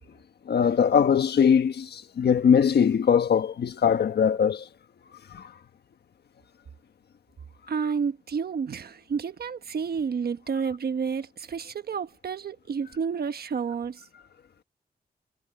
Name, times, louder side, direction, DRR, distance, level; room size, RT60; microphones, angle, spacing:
voice 1, 0.5-4.6 5.3-5.4, left 7 dB, 90° left, 1.3 m, -21 dB
voice 2, 7.7-14.0, right 6 dB, 70° right, 1.2 m, -30 dB
wide cardioid pair, 110°, 17 cm